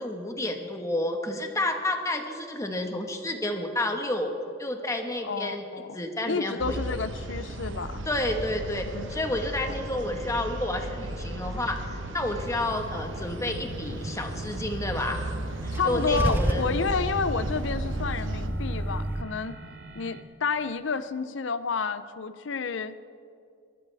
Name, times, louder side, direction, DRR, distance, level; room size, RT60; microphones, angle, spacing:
voice 1, 0.0-4.3 4.6-5.6 5.9-6.8 8.0-15.3 15.6-16.6, left 1 dB, 15° left, 3 dB, 1.4 m, -30 dB
voice 2, 5.2-8.1 8.9-9.1 15.7-19.6 19.9-23.0, left 5 dB, 70° left, 13 dB, 0.6 m, -30 dB
sound 1, 6.6-18.5, right 1 dB, 80° right, 1.1 m, -35 dB
sound 2, 13.4-20.2, right 1 dB, 65° right, 1.2 m, -44 dB
Car / Engine starting / Idling, 15.7-19.2, right 1 dB, 10° right, 0.4 m, -30 dB
27.5 x 13.5 x 3.5 m, 2.5 s
head